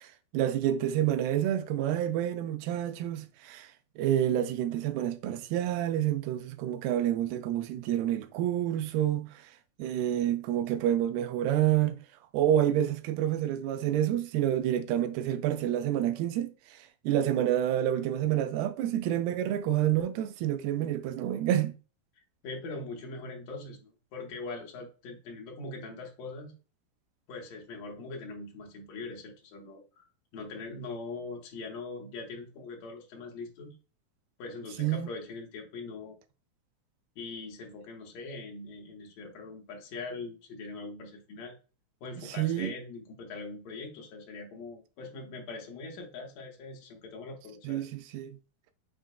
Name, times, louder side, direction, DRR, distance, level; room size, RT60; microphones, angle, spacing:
voice 1, 0.0-3.7 4.0-9.4 9.8-12.0 12.3-21.7 34.8-35.1 42.3-42.7 47.6-48.4, right 11 dB, 90° right, 2.5 m, -28 dB
voice 2, 22.4-26.5 27.3-30.0 30.3-33.8 34.4-36.2 37.2-41.6 42.0-47.9, left 3 dB, 70° left, 1.7 m, -42 dB
6.2 x 3.8 x 2.2 m
omnidirectional pair, 4.4 m